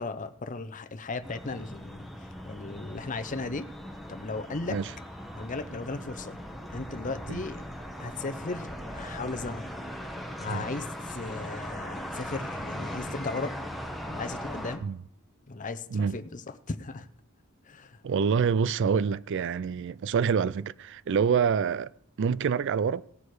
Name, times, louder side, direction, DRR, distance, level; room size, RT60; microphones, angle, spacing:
voice 1, 0.0-2.1 2.5-3.7 4.1-4.8 5.3-6.4 6.7-7.6 8.0-8.7 8.9-9.7 10.4-13.6 14.1-14.8 15.5-17.1 17.7-18.0, left 3 dB, 35° left, 0.7 m, -36 dB
sound 1, 1.2-14.8, equal, ahead, 1.1 m, -39 dB
voice 2, 18.0-21.9 22.2-23.0, right 6 dB, 55° right, 0.4 m, -26 dB
17.0 x 6.6 x 4.8 m
head